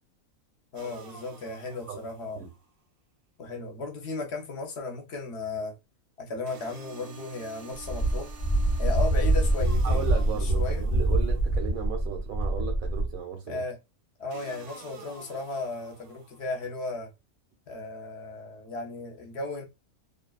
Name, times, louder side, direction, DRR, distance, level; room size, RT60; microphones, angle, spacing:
voice 1, 0.7-2.4 3.4-5.8 6.2-8.3 8.8-10.1 10.4-10.9 13.5-13.8 14.2-17.1 17.7-19.6, left 3 dB, 60° left, 0.9 m, -35 dB
sound 1, 0.8-2.7 6.5-11.7 14.3-16.7, right 5 dB, 55° right, 0.7 m, -49 dB
Wind, 7.8-13.1, right 1 dB, 25° left, 1.0 m, -25 dB
voice 2, 9.5-13.6, right 7 dB, 90° right, 1.1 m, -35 dB
2.6 x 2.3 x 2.3 m
omnidirectional pair, 1.4 m